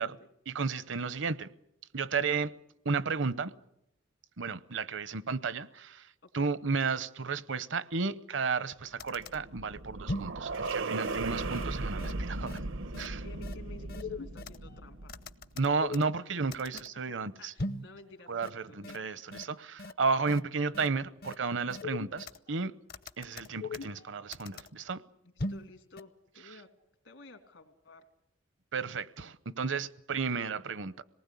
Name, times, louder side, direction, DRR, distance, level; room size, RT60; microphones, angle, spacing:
voice 1, 0.5-1.5 1.9-2.5 2.8-3.5 4.4-6.1 6.3-12.6 13.0-13.2 15.6-17.8 18.3-22.7 23.2-25.0 28.7-31.0, right 4 dB, 65° right, 0.8 m, -33 dB
voice 2, 6.2-6.5 11.1-11.4 13.2-15.1 16.9-19.0 25.2-26.7 27.0-28.0, left 2 dB, 75° left, 2.8 m, -53 dB
sound 1, 8.6-8.7 9.0-9.4 10.1-10.4 10.6-10.7 11.0-11.2 11.5-11.6 12.0-12.1 12.5-12.6 12.9-13.1 13.4-13.5 13.9-14.6 15.1-16.2 16.5-16.9 17.6-17.9 18.4-18.5 18.8-19.0 19.3-19.4 19.8-19.9 20.3-20.4 20.7-20.9 21.2-21.3 21.7-22.4 22.9-24.0 24.3-24.7 25.4-25.7 26.0-26.1, left 2 dB, 50° left, 0.8 m, -38 dB
sound 2, 9.0-15.5, right 3 dB, 85° right, 1.1 m, -37 dB
26.5 x 19.5 x 8.4 m
head